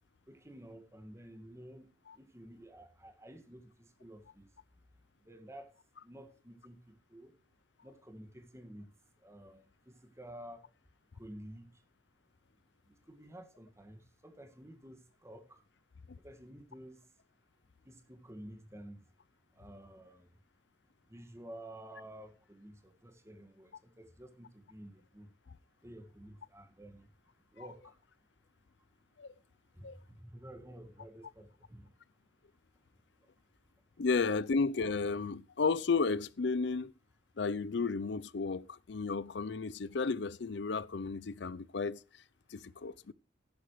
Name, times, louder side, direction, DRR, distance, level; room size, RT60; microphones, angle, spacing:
voice 1, 0.3-4.5 5.2-5.7 6.0-7.3 7.8-8.9 9.2-10.7 11.1-11.8 12.9-15.6 16.2-17.1 17.9-19.1 19.6-20.3 21.1-25.3 25.8-27.1 27.5-28.0 29.7-31.9, right 1 dB, 15° right, 1.8 m, -52 dB
voice 2, 34.0-36.9 37.4-42.0 42.5-43.1, left 4 dB, 60° left, 0.5 m, -33 dB
14.0 x 11.5 x 3.1 m
head